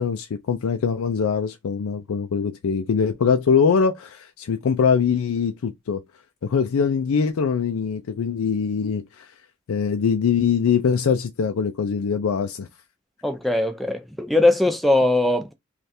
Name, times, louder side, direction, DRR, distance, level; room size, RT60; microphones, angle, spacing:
voice 1, 0.0-6.0 6.4-9.3 9.7-12.7, left 6 dB, 85° left, 0.4 m, -22 dB
voice 2, 13.2-15.5, left 2 dB, ahead, 0.5 m, -20 dB
3.2 x 2.4 x 4.1 m
head